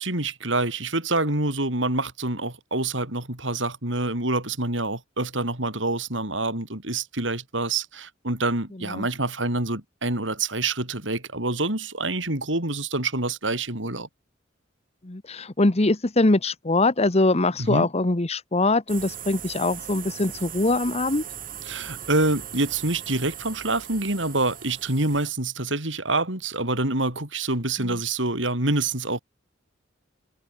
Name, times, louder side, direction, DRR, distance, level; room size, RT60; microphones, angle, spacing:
voice 1, 0.0-14.1 17.6-17.9 21.6-29.2, right 2 dB, 70° right, 6.5 m, -26 dB
voice 2, 15.0-21.2 27.8-27.9, left 2 dB, 35° left, 1.1 m, -23 dB
sound 1, 18.9-25.3, right 9 dB, 45° right, 2.7 m, -39 dB
head